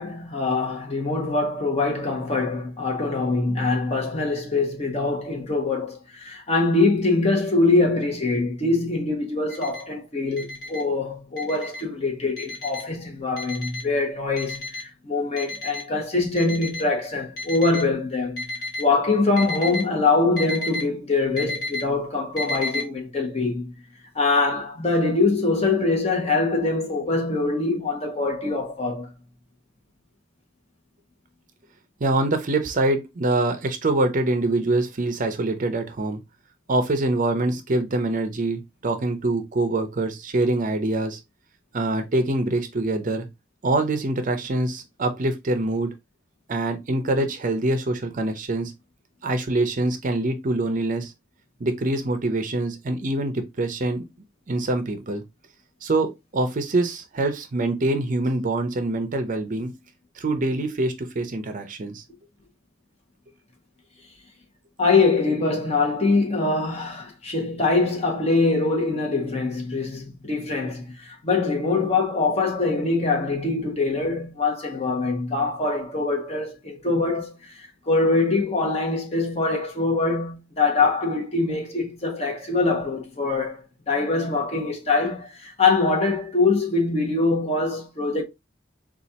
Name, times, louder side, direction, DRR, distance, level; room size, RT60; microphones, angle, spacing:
voice 1, 0.0-18.4 18.8-23.7 24.1-29.1 64.8-88.2, left 3 dB, 35° left, 1.0 m, -23 dB
Alarm, 9.5-9.8 10.4-10.8 11.4-11.8 12.4-12.8 13.4-13.8 14.4-14.8 15.4-15.8 16.4-16.8 17.4-17.8 18.4-18.8 19.4-19.8 20.4-20.8 21.4-21.8 22.4-22.8, left 1 dB, 55° left, 1.4 m, -31 dB
voice 2, 32.0-36.2 36.7-41.2 41.7-43.3 43.6-45.9 46.5-48.7 49.2-51.1 51.6-54.1 54.5-55.2 55.8-59.7 60.2-62.0, right 2 dB, 45° right, 0.6 m, -24 dB
4.1 x 2.4 x 2.7 m
head